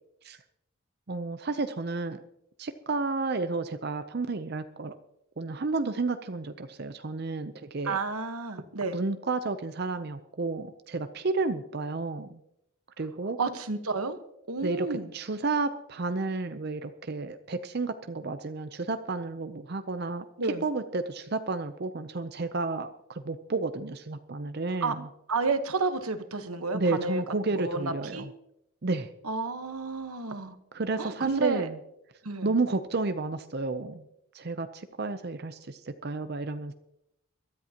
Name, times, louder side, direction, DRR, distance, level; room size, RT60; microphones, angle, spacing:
voice 1, 1.1-2.2 2.6-4.9 5.4-8.0 8.9-12.4 13.0-13.4 14.6-14.9 15.1-20.3 20.6-25.1 26.7-28.3 28.8-29.1 30.7-31.8 32.4-34.0 34.3-36.7, right 3 dB, 45° right, 9 dB, 0.6 m, -31 dB
voice 2, 7.8-9.0 13.4-14.2 14.5-15.1 20.4-20.6 24.8-25.0 25.3-27.2 27.6-28.3 29.2-30.6 31.0-31.6 32.2-32.5, right 4 dB, 85° right, 9 dB, 1.2 m, -31 dB
22.5 x 13.5 x 2.9 m, 0.81 s
head